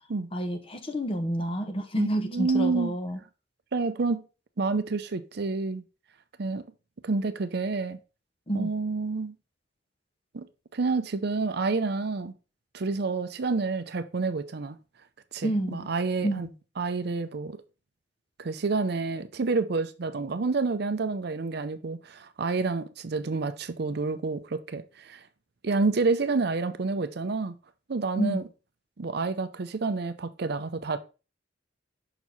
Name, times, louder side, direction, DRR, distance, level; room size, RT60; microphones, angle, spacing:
voice 1, 0.3-3.2 8.5-8.7 15.4-15.9 16.2-16.4 28.2-28.4, right 1 dB, 30° left, 0.9 m, -29 dB
voice 2, 2.0-3.0 3.7-4.2 4.6-5.8 6.4-6.7 7.0-8.0 8.5-9.3 10.3-10.5 10.7-12.3 12.7-14.8 15.3-16.5 16.8-17.6 18.4-25.2 25.6-27.5 27.9-28.4 29.0-31.0, right 3 dB, 55° right, 0.5 m, -28 dB
5.9 x 4.5 x 4.0 m
head